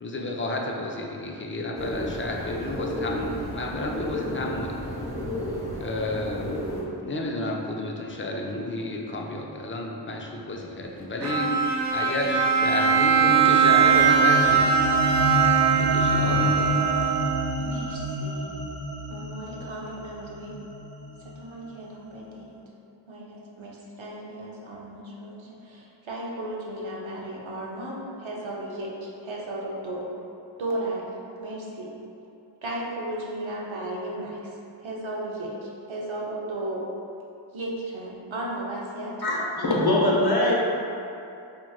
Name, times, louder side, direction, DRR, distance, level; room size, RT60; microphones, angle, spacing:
voice 1, 0.0-4.7 5.8-6.6 7.0-11.5 11.9-14.7 15.8-16.7, left 1 dB, 30° left, 0 dB, 0.4 m, -31 dB
sound 1, 1.8-6.8, left 1 dB, 10° left, 1.2 m, -32 dB
Bowed string instrument, 11.2-17.6, right 7 dB, 40° right, 0.4 m, -21 dB
sound 2, 13.1-21.4, equal, 65° right, 1.2 m, -30 dB
voice 2, 17.6-18.6 19.1-20.6 21.2-22.5 23.1-30.1 30.6-31.0 31.4-31.9 32.6-34.4 34.8-36.8 37.5-39.2, right 1 dB, 85° right, -4 dB, 0.7 m, -35 dB
voice 3, 39.2-40.5, left 1 dB, 55° left, -5 dB, 0.8 m, -22 dB
4.4 x 3.0 x 2.3 m, 2.7 s
wide cardioid pair, 60°, 45 cm